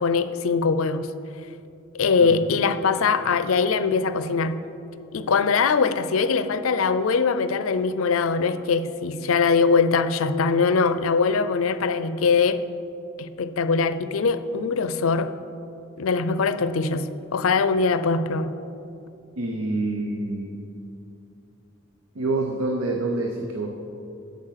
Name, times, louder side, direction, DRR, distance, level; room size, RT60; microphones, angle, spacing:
voice 1, 0.0-1.1 1.9-4.6 5.1-12.6 13.2-15.3 16.0-18.5, left 5 dB, 75° left, 12 dB, 0.5 m, -22 dB
voice 2, 19.4-20.6 22.1-23.8, right 2 dB, 80° right, 3 dB, 0.7 m, -27 dB
13.0 x 5.3 x 5.7 m, 2.7 s
head